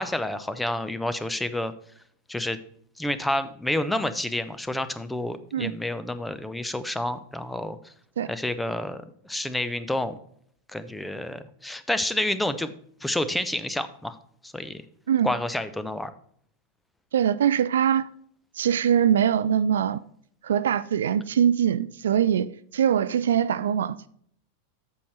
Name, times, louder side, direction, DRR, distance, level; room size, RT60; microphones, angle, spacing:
voice 1, 0.0-1.7 2.3-2.6 3.0-7.9 8.3-10.2 10.7-12.7 13.0-14.2 14.4-14.8 15.2-16.1, left 1 dB, 5° left, 0.6 m, -29 dB
voice 2, 17.1-18.1 18.5-20.0 20.4-24.1, right 9 dB, 65° right, 0.3 m, -23 dB
8.4 x 6.5 x 4.3 m
figure-of-eight pair, 90°, 0 cm